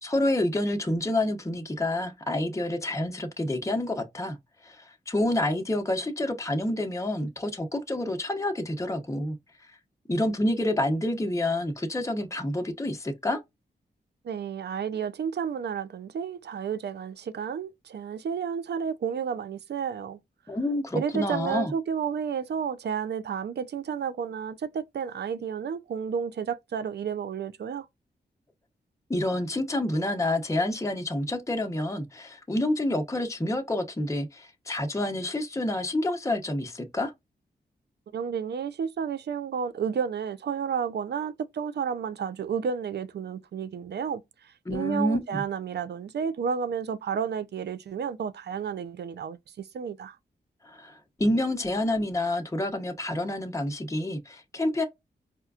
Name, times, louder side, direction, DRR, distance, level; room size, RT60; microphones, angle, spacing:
voice 1, 0.0-4.4 4.6-9.4 10.1-13.4 20.5-21.7 29.1-37.1 44.7-45.4 50.6-54.8, left 1 dB, 15° left, 0.8 m, -28 dB
voice 2, 14.2-20.2 20.9-27.9 38.1-50.2, right 7 dB, 70° right, 0.5 m, -31 dB
4.3 x 2.2 x 2.4 m
cardioid pair, 55°, 18 cm